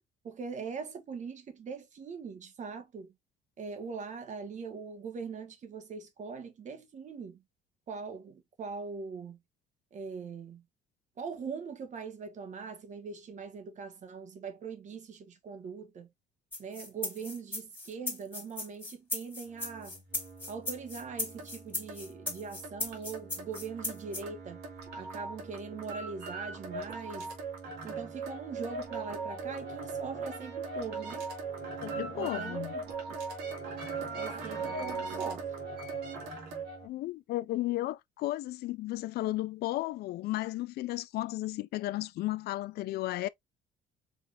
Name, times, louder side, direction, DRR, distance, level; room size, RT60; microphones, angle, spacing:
voice 1, 0.2-3.1 3.6-7.4 7.9-9.4 9.9-10.6 11.2-16.1 16.6-20.0 20.5-24.6 24.9-27.3 27.8-31.3 32.1-32.9 34.2-35.5, right 5 dB, 45° right, 1.4 m, -41 dB
sound 1, 16.5-24.2, left 2 dB, 10° left, 2.2 m, -37 dB
sound 2, 19.5-36.9, right 4 dB, 90° right, 2.3 m, -40 dB
voice 2, 31.8-32.7 36.8-43.3, left 16 dB, 70° left, 0.5 m, -34 dB
5.1 x 3.6 x 2.5 m
cardioid pair, 110°, 17 cm